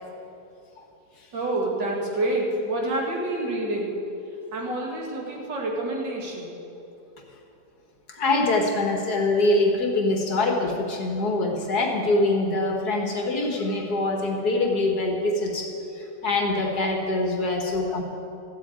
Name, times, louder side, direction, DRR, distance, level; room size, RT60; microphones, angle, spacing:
voice 1, 1.3-3.9 4.5-6.5, right 2 dB, 65° right, -2 dB, 3.0 m, -28 dB
voice 2, 8.1-15.7 16.0-18.0, left 2 dB, 55° left, 2 dB, 2.1 m, -24 dB
14.0 x 8.4 x 8.9 m, 2.8 s
omnidirectional pair, 2.1 m